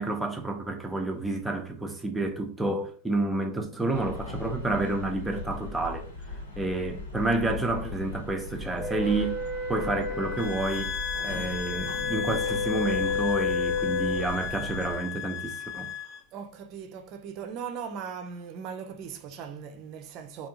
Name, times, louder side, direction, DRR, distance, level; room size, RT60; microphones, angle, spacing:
voice 1, 0.0-6.1 6.6-9.4 9.7-10.9 11.2-15.9, right 2 dB, 5° right, 0.8 m, -29 dB
sound 1, 3.9-15.0, left 3 dB, 85° left, 1.7 m, -39 dB
Wind instrument woodwind instrument, 8.8-14.3, left 4 dB, 15° left, 1.2 m, -32 dB
sound 2, 10.4-16.2, left 7 dB, 45° left, 0.5 m, -35 dB
voice 2, 16.3-20.5, right 7 dB, 45° right, 0.6 m, -39 dB
3.5 x 2.9 x 2.7 m
figure-of-eight pair, 90°, 0 cm